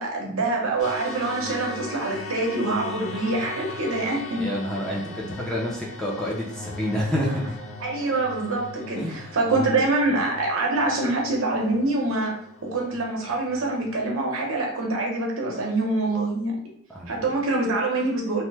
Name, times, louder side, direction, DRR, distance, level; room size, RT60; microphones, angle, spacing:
voice 1, 0.0-4.5 7.8-12.3 12.7-16.6 17.1-18.4, right 2 dB, 80° right, -1 dB, 0.8 m, -25 dB
sound 1, 0.8-14.0, left 2 dB, 70° left, 0.4 m, -39 dB
voice 2, 4.4-7.6 9.0-9.7 16.9-17.2, equal, 5° left, -4 dB, 0.5 m, -29 dB
3.0 x 2.1 x 3.3 m, 0.65 s
head